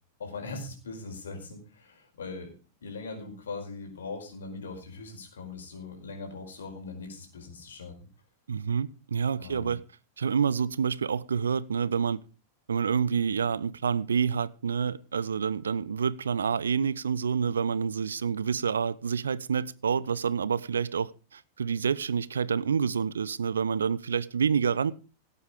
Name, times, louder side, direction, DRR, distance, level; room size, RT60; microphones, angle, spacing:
voice 1, 0.2-2.5 2.8-7.9 9.4-9.7, left 3 dB, 65° left, 4.9 m, -40 dB
voice 2, 8.5-9.8 10.2-12.2 12.7-24.9, right 6 dB, 70° right, 0.6 m, -28 dB
17.0 x 8.5 x 5.1 m
figure-of-eight pair, 90°, 0 cm